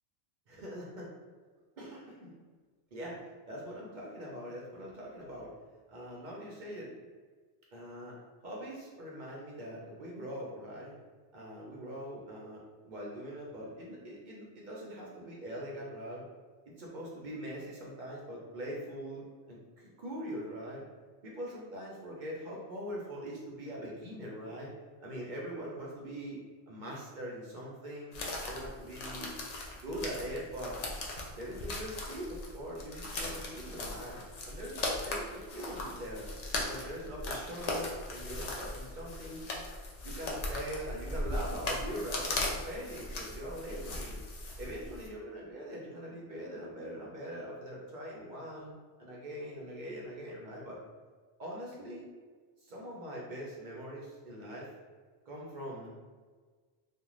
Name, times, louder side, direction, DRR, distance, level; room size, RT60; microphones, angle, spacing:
voice 1, 0.5-1.1 1.8-2.3 2.9-5.5 5.9-6.9 7.7-8.2 8.4-11.0 11.3-16.2 16.8-20.8 21.2-24.7 25.0-26.4 26.7-28.1 28.5-29.3 29.8-30.8 31.4-34.2 34.4-36.3 36.6-39.5 40.0-44.2 44.6-48.7 49.0-50.8 51.4-52.0 52.6-54.7 55.3-55.9, equal, 55° right, -4 dB, 0.6 m, -42 dB
sound 1, 28.1-45.1, left 2 dB, 60° left, 0.4 m, -38 dB
2.4 x 2.1 x 3.0 m, 1.5 s
omnidirectional pair, 1.2 m